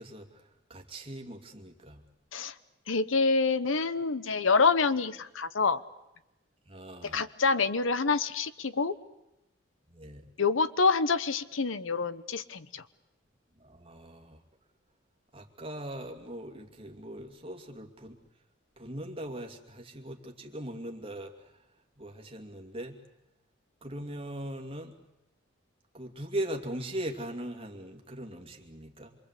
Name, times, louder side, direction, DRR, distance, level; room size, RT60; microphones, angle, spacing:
voice 1, 0.0-2.0 6.7-7.2 9.9-10.3 13.6-14.4 15.3-18.2 18.8-21.6 22.0-23.0 23.8-24.9 25.9-29.2, right 1 dB, 30° right, 2 dB, 2.6 m, -40 dB
voice 2, 2.9-5.8 7.1-8.9 10.4-12.8, left 4 dB, 90° left, 14 dB, 1.0 m, -27 dB
27.0 x 24.0 x 8.3 m, 0.90 s
head